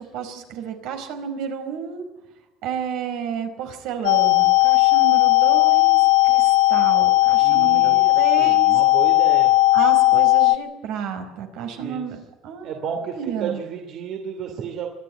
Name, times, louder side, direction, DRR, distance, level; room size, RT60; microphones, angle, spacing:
voice 1, 0.0-2.1 2.6-6.0 6.2-8.7 9.7-12.9 13.1-13.6, right 7 dB, 70° right, 6 dB, 4.6 m, -31 dB
sound 1, 4.0-10.6, left 20 dB, 80° left, 0.6 m, -16 dB
voice 2, 7.4-9.5 11.7-12.1 12.6-14.9, right 7 dB, 50° right, 4 dB, 2.7 m, -32 dB
25.0 x 11.5 x 9.7 m, 1.1 s
cardioid pair, 150°, 0 cm